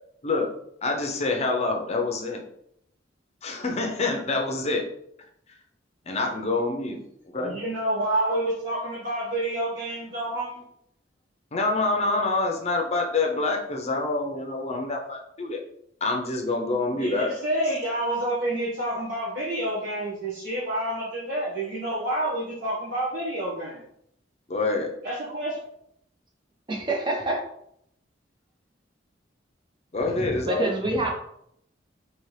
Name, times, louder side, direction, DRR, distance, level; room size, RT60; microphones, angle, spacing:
voice 1, 0.8-2.4 3.4-4.9 6.1-7.0 7.3-7.6 11.5-15.6 16.0-17.3 24.5-24.9 29.9-30.7, left 3 dB, 35° left, 2 dB, 0.6 m, -26 dB
voice 2, 7.4-10.6 17.0-23.8 25.0-25.6, right 1 dB, 60° right, -9 dB, 1.3 m, -28 dB
voice 3, 26.7-27.4 30.1-31.1, right 1 dB, 25° right, -1 dB, 0.8 m, -26 dB
4.4 x 2.9 x 3.2 m, 0.73 s
head